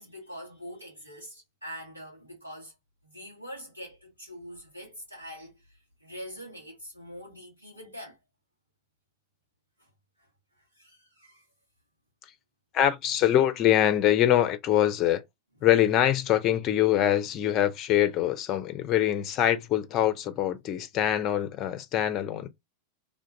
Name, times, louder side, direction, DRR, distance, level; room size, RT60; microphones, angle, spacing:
voice 1, 0.0-2.7 3.0-8.2 9.8-9.9 10.2-10.3 10.8-11.4, equal, 85° right, 2.1 m, -44 dB
voice 2, 12.7-15.2 15.6-22.5, left 11 dB, 35° left, 0.5 m, -24 dB
3.5 x 2.5 x 3.8 m
figure-of-eight pair, 90°, 0 cm